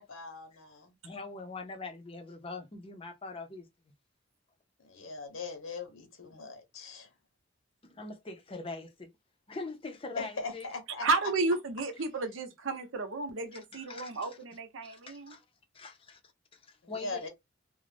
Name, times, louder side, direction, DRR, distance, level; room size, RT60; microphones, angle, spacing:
voice 1, 0.0-0.9 4.8-7.1 10.2-11.1 16.8-17.3, left 3 dB, 85° left, 1.0 m, -40 dB
voice 2, 1.0-3.7 7.8-9.1 9.5-10.7 13.7-14.3 14.8-15.4 15.7-16.2 16.5-17.3, left 3 dB, 30° left, 0.5 m, -43 dB
voice 3, 11.0-15.4, right 3 dB, 75° right, 0.7 m, -32 dB
2.4 x 2.1 x 3.3 m
head